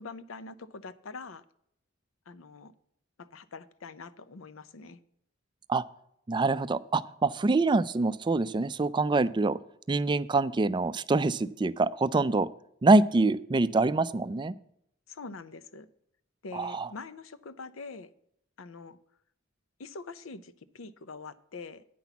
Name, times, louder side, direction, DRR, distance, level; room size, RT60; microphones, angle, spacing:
voice 1, 0.0-1.4 2.3-2.7 3.2-5.0 15.1-15.9 16.4-18.1 18.6-19.0 19.8-21.8, left 4 dB, 90° left, 14 dB, 0.7 m, -44 dB
voice 2, 6.3-9.6 9.9-12.5 12.8-14.5 16.5-16.9, right 3 dB, 25° right, 15 dB, 0.3 m, -25 dB
9.3 x 5.9 x 7.0 m, 0.72 s
head